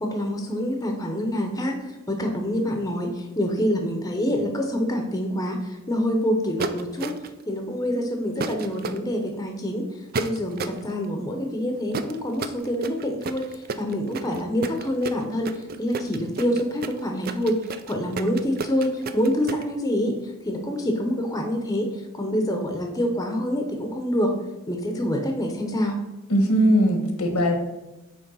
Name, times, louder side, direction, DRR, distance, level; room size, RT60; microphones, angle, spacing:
voice 1, 0.0-7.1 7.5-9.8 10.2-17.6 17.9-24.3 24.7-26.0, equal, 15° left, 3 dB, 0.8 m, -26 dB
sound 1, 6.6-7.4 8.4-9.0 10.1-10.8 11.9-19.6, right 4 dB, 40° right, 0.4 m, -31 dB
voice 2, 26.3-27.6, equal, 80° left, 4 dB, 1.4 m, -20 dB
8.5 x 3.2 x 5.4 m, 1.0 s
head